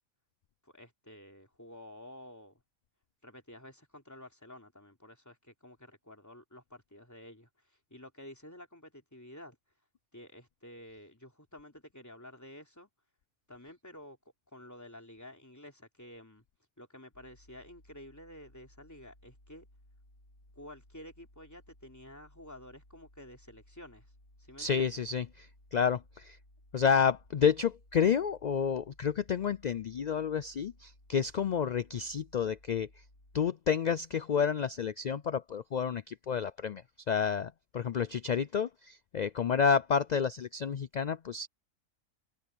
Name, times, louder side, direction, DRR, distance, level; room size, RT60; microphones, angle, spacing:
voice 1, 0.6-2.6 3.2-7.5 7.9-9.6 10.1-12.9 13.5-14.2 14.5-16.4 16.8-19.7 20.5-24.1 24.4-25.0, left 1 dB, 15° left, 3.3 m, -51 dB
sound 1, 17.1-33.5, left 1 dB, 65° left, 4.3 m, -61 dB
voice 2, 24.6-26.4 26.7-32.9 33.3-36.8 37.1-41.5, left 7 dB, 90° left, 0.3 m, -30 dB
omnidirectional pair, 1.4 m